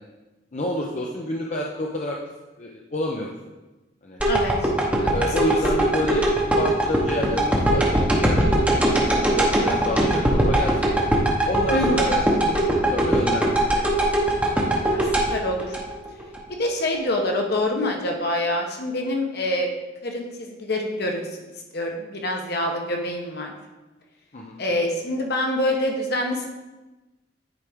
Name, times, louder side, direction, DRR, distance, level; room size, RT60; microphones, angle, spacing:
voice 1, 0.5-2.2 2.6-3.3 4.0-4.2 5.1-6.3 6.6-10.8 11.5-13.6 24.3-24.6, left 1 dB, 40° left, -1 dB, 0.6 m, -29 dB
voice 2, 4.2-4.7 5.0-5.1 11.7-12.2 14.9-15.8 16.6-19.7 20.0-23.5 24.6-26.5, left 1 dB, 55° left, 2 dB, 1.1 m, -26 dB
sound 1, 4.2-16.4 16.8-16.9, right 1 dB, 5° right, 0.9 m, -21 dB
9.6 x 4.8 x 3.6 m, 1.1 s
head